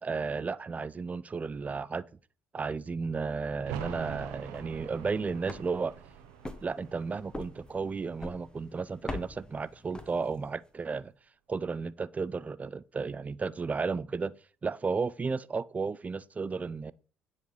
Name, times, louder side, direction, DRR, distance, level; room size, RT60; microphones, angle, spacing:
voice 1, 0.0-2.1 2.5-5.9 6.6-11.1 11.5-14.3 14.6-16.9, right 4 dB, 25° right, 0.4 m, -33 dB
sound 1, 3.6-9.1 9.4-9.5, right 10 dB, 75° right, 0.6 m, -45 dB
sound 2, 4.3-10.6, left 2 dB, 15° left, 1.0 m, -45 dB
9.1 x 4.0 x 3.2 m
hypercardioid pair, 50°, 5 cm